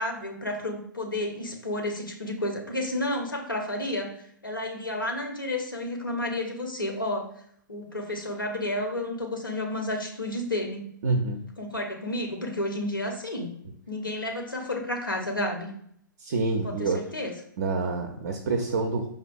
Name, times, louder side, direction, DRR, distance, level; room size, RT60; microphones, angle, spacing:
voice 1, 0.0-4.2 4.4-7.3 7.7-10.9 11.6-13.6 13.9-15.7 16.8-17.3, left 1 dB, 90° left, 3 dB, 0.6 m, -31 dB
voice 2, 11.0-11.4 16.2-17.0 17.6-19.1, right 3 dB, 50° right, 4 dB, 0.4 m, -27 dB
4.8 x 2.2 x 2.5 m, 0.66 s
figure-of-eight pair, 115°, 11 cm